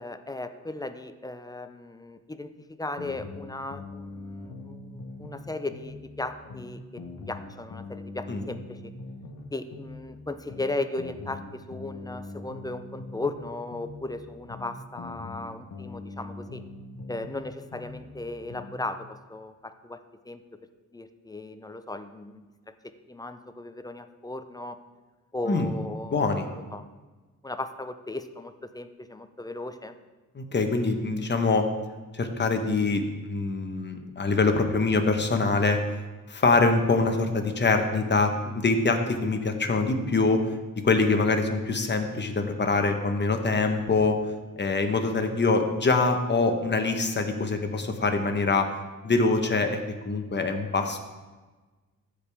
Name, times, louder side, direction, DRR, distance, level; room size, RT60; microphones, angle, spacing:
voice 1, 0.0-7.0 7.3-8.9 9.5-16.6 17.1-20.0 20.2-20.4 20.9-22.7 23.1-24.8 25.3-26.9 27.4-30.0, left 2 dB, 10° left, 10 dB, 0.5 m, -36 dB
sound 1, 3.0-5.4 5.7-9.4 9.7-13.4 13.7-17.4 17.7-18.8, left 3 dB, 70° left, 1.3 m, -42 dB
voice 2, 26.1-26.5 30.3-31.6 32.1-35.8 36.3-40.4 40.8-44.2 44.6-48.7 49.0-49.8 50.0-51.0, left 3 dB, 35° left, 5 dB, 1.1 m, -24 dB
14.0 x 5.0 x 3.5 m, 1.3 s
cardioid pair, 90°, 32 cm